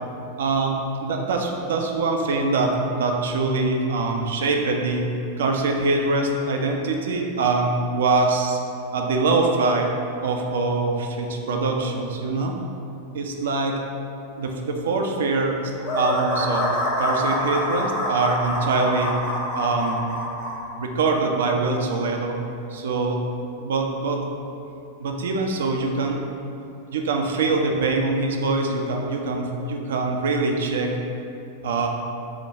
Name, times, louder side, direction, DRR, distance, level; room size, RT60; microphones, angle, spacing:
voice 1, 0.4-5.0 5.4-8.6 8.9-9.9 10.2-12.5 13.1-13.8 14.4-15.6 16.0-19.1 19.6-20.1 20.8-22.4 22.7-23.2 23.6-24.2 25.0-26.2 26.9-30.9 31.6-31.9, right 3 dB, 60° right, 2 dB, 0.3 m, -23 dB
laughing blackbird, 15.8-20.6, left 1 dB, 45° left, 0.8 m, -26 dB
4.8 x 2.2 x 2.7 m, 2.7 s
figure-of-eight pair, 90°, 0 cm